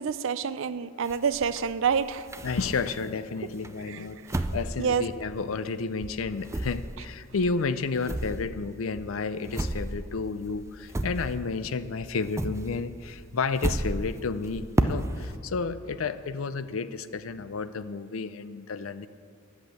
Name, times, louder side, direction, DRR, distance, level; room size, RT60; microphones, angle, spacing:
voice 1, 0.0-2.3 3.9-4.0 4.8-5.0, right 6 dB, 65° right, 15 dB, 0.5 m, -27 dB
sound 1, 1.0-3.2 3.6-5.8 6.0-11.7 12.0-15.4, right 1 dB, 15° right, 0.4 m, -33 dB
voice 2, 2.4-19.1, left 4 dB, 80° left, 13 dB, 0.5 m, -31 dB
10.5 x 8.2 x 7.7 m, 2.2 s
head